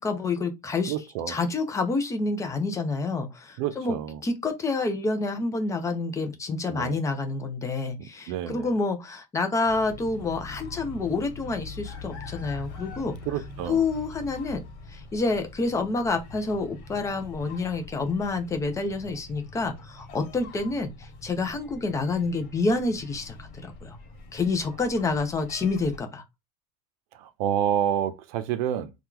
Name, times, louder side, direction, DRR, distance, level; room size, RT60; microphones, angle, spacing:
voice 1, 0.0-0.9 1.3-4.0 4.2-13.2 13.7-14.6 14.9-23.4 23.6-24.0 24.3-26.2, left 3 dB, 15° left, 0.6 m, -28 dB
voice 2, 0.9-1.4 3.6-4.2 6.7-7.0 8.0-8.7 13.3-13.8 27.1-28.9, right 10 dB, 85° right, 0.6 m, -29 dB
sound 1, 9.6-26.0, left 3 dB, 55° left, 1.5 m, -43 dB
3.0 x 2.4 x 3.6 m
cardioid pair, 165°, 19 cm